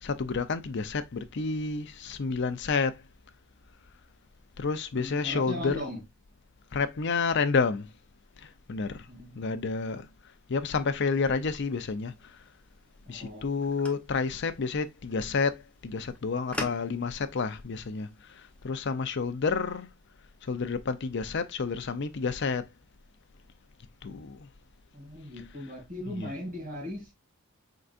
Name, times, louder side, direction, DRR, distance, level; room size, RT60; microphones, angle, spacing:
voice 1, 0.0-3.0 4.6-5.8 6.7-7.9 8.4-9.0 9.4-10.1 10.5-12.1 13.1-18.1 18.6-19.9 20.5-22.7 24.0-24.4 26.1-26.3, left 4 dB, 55° left, 0.5 m, -30 dB
voice 2, 4.9-6.0 9.1-9.6 13.1-13.4 24.9-27.1, equal, 40° right, 2.7 m, -38 dB
sound 1, 11.1-18.7, left 1 dB, 5° left, 0.7 m, -46 dB
4.5 x 3.9 x 2.4 m
head